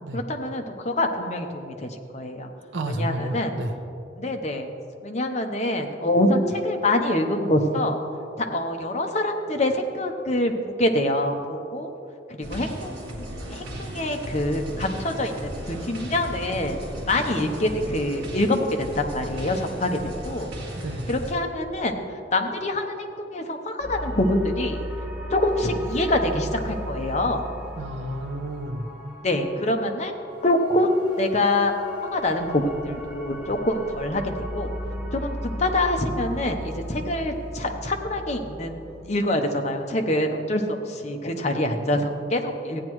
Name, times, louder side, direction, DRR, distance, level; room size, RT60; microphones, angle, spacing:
voice 1, 0.1-2.5 2.9-3.6 4.1-4.7 5.0-8.0 8.4-11.9 12.4-16.8 17.1-20.5 21.1-22.0 22.3-24.8 25.3-27.4 29.2-30.1 30.4-31.7 32.0-34.7 35.1-42.8, left 1 dB, 40° left, 4 dB, 0.8 m, -25 dB
voice 2, 2.7-3.7 20.8-21.0 27.8-28.8, right 1 dB, 85° right, 5 dB, 0.8 m, -31 dB
sound 1, 12.4-21.3, equal, 60° right, 1.9 m, -36 dB
sound 2, 23.8-39.1, equal, 10° right, 2.5 m, -36 dB
15.0 x 9.6 x 3.1 m, 2.8 s
head